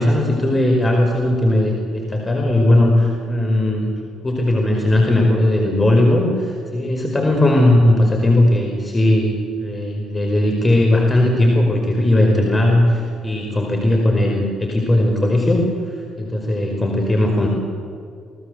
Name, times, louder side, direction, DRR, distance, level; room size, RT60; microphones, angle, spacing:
voice 1, 0.0-17.5, left 1 dB, 25° left, 1 dB, 5.1 m, -17 dB
27.0 x 18.5 x 8.2 m, 2.4 s
hypercardioid pair, 50°, 0 cm